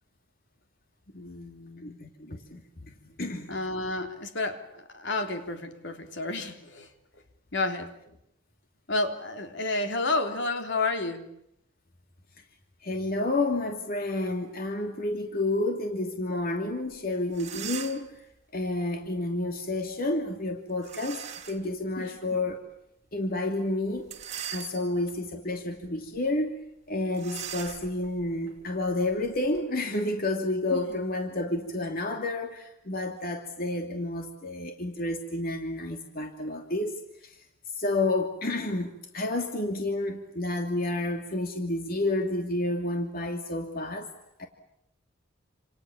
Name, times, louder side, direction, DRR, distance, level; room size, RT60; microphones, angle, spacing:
voice 1, 1.1-2.0 3.5-6.9 7.5-7.9 8.9-11.3 22.0-22.4 30.7-30.8, left 2 dB, 65° left, 6 dB, 3.5 m, -31 dB
voice 2, 1.8-2.9 3.2-3.6 12.8-18.2 18.5-21.2 21.5-22.6 23.1-24.1 24.5-26.6 26.9-37.4 37.8-44.1 44.4-44.5, left 2 dB, 50° left, 4 dB, 2.8 m, -30 dB
sound 1, 16.9-17.0 17.3-18.2 20.8-21.7 22.2-22.3 24.0-25.1 25.7-25.9 26.1-26.3 27.1-29.6, right 9 dB, 40° right, 3.5 m, -40 dB
29.0 x 28.0 x 7.3 m, 0.78 s
head